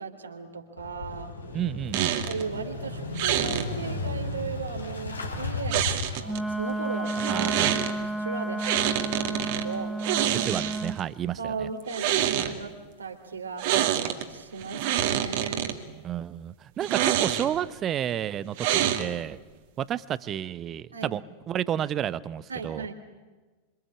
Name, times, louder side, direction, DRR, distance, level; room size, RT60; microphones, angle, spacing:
voice 1, 0.0-1.3 2.2-10.0 11.4-13.7 14.3-15.7 20.9-21.2 22.5-22.9, right 4 dB, 75° right, 5 dB, 3.3 m, -37 dB
Motorcycle / Engine starting, 0.8-6.6, left 3 dB, 75° left, 4.2 m, -35 dB
voice 2, 1.5-2.1 7.3-7.7 10.4-11.5 12.4-12.5 16.0-19.4 19.8-21.2 21.5-22.9, right 10 dB, 30° right, 18 dB, 0.9 m, -31 dB
sound 1, 1.9-2.4 3.2-3.7 5.7-6.4 7.1-7.9 8.6-9.6 10.0-11.0 11.8-12.5 13.6-14.2 14.6-15.7 16.8-17.7 18.6-19.3, right 11 dB, 50° right, 2.5 m, -26 dB
Wind instrument woodwind instrument, 6.2-11.0, right 2 dB, ahead, 1.2 m, -32 dB
26.5 x 25.5 x 8.6 m, 1.3 s
figure-of-eight pair, 90°, 0 cm